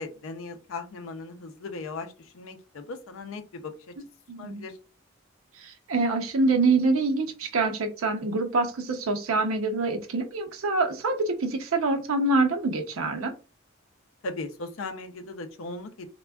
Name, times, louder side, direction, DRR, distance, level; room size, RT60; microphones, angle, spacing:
voice 1, 0.0-3.9 4.4-4.8 14.2-16.1, left 3 dB, 75° left, 7 dB, 0.5 m, -38 dB
voice 2, 4.3-4.6 5.5-13.3, right 3 dB, 85° right, 5 dB, 0.6 m, -25 dB
3.4 x 2.2 x 2.2 m, 0.32 s
head